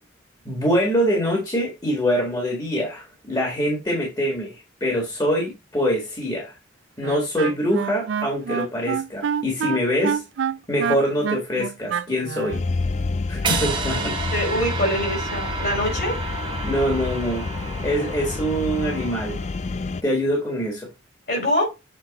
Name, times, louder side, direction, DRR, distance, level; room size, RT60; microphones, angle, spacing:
voice 1, 0.4-6.6 7.0-10.2 10.7-12.6 13.3-14.2 16.6-17.4 17.8-19.4 20.0-20.9, equal, 20° left, -1 dB, 1.6 m, -24 dB
Wind instrument woodwind instrument, 7.0-12.6, right 7 dB, 75° right, 0.4 m, -27 dB
sound 1, 12.5-20.0, left 3 dB, 35° left, 0.4 m, -29 dB
sound 2, 13.4-19.6, right 4 dB, 25° right, 1.0 m, -31 dB
voice 2, 14.3-16.2 21.3-21.6, equal, 55° left, 1 dB, 3.5 m, -24 dB
7.5 x 4.0 x 4.1 m, 0.26 s
head